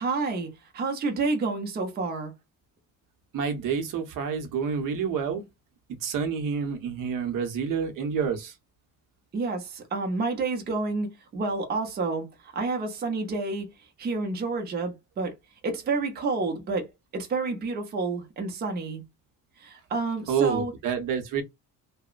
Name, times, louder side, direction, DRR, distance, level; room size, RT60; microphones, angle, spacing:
voice 1, 0.0-2.3 9.3-13.7 14.0-15.3 15.6-16.9 17.1-19.0 19.6-20.7, right 3 dB, 25° right, 0.6 m, -29 dB
voice 2, 3.3-5.4 6.0-8.5 20.3-21.4, right 6 dB, 60° right, 0.7 m, -28 dB
2.9 x 2.1 x 2.3 m
cardioid pair, 155°, 37 cm